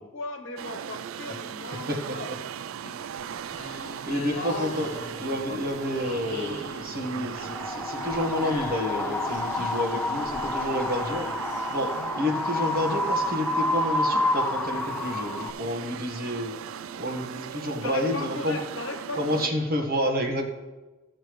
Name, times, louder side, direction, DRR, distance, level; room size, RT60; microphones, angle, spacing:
voice 1, 0.1-2.3 2.8-3.0 4.0-5.1 5.4-5.6 9.5-9.8 12.0-12.1 17.8-19.5, left 2 dB, 70° left, 4 dB, 1.1 m, -38 dB
sound 1, 0.6-19.5, right 8 dB, 75° right, 0.3 m, -38 dB
voice 2, 1.9-2.3 4.0-4.9 5.2-11.3 11.7-16.5 16.9-18.6 19.2-20.5, left 1 dB, 45° right, 2 dB, 1.4 m, -29 dB
sound 2, 3.0-12.1, left 2 dB, 40° left, 1.4 m, -44 dB
Wind, 7.4-15.5, left 2 dB, 5° left, 0.5 m, -29 dB
15.5 x 6.7 x 3.1 m, 1.2 s
head